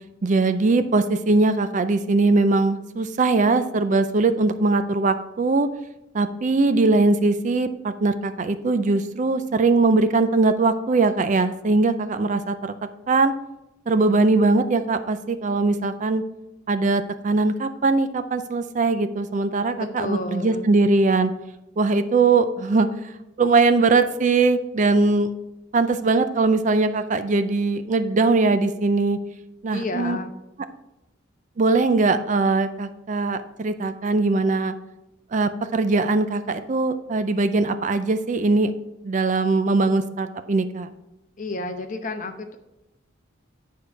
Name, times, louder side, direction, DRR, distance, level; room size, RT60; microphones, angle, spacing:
voice 1, 0.2-5.7 6.1-12.7 13.1-13.3 13.9-16.2 16.7-21.3 21.8-22.9 23.4-25.3 25.7-29.2 29.6-30.2 31.6-34.7 35.3-38.7 39.0-40.9, right 3 dB, 40° right, 11 dB, 0.4 m, -21 dB
voice 2, 19.8-20.7 29.7-30.3 41.4-42.6, left 2 dB, 40° left, 7 dB, 0.8 m, -30 dB
9.7 x 4.7 x 4.6 m, 0.94 s
head